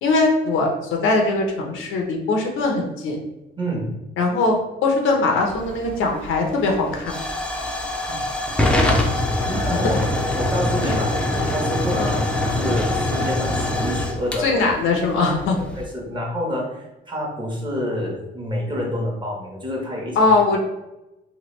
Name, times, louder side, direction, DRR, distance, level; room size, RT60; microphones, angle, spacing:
voice 1, 0.0-3.2 4.2-7.2 9.7-9.8 10.8-11.0 12.0-12.1 14.4-15.5 20.2-20.6, left 3 dB, 80° left, 1 dB, 0.7 m, -21 dB
voice 2, 3.6-3.9 8.1-8.2 9.4-10.0 10.3-14.6 15.3-20.3, equal, 25° right, -1 dB, 1.0 m, -28 dB
Hiss / Fire / Tick, 5.4-15.8, left 1 dB, 5° left, 0.5 m, -24 dB
3.1 x 2.3 x 3.1 m, 0.98 s
cardioid pair, 90°, 20 cm